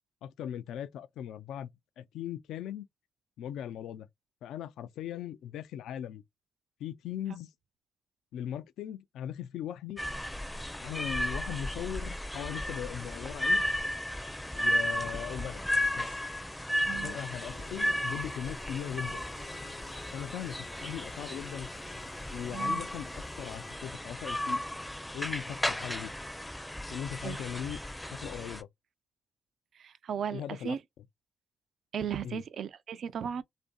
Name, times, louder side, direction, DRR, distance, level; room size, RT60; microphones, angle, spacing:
voice 1, 0.2-2.9 3.4-4.1 4.4-6.2 6.8-7.5 8.3-10.0 10.8-13.6 14.5-15.6 15.9-16.2 16.9-19.3 20.1-21.7 22.3-24.6 25.1-26.1 26.9-27.8 28.1-28.7 30.3-30.8 32.2-32.4, left 10 dB, 85° left, 0.3 m, -39 dB
sound 1, 10.0-28.6, left 1 dB, 10° left, 0.5 m, -34 dB
voice 2, 16.9-17.2 20.8-20.9 22.5-22.8 27.2-27.4 29.7-30.8 31.9-33.4, right 8 dB, 65° right, 0.4 m, -36 dB
Engine, 17.4-23.8, left 3 dB, 60° left, 0.7 m, -53 dB
2.6 x 2.5 x 2.2 m
cardioid pair, 80°, 0 cm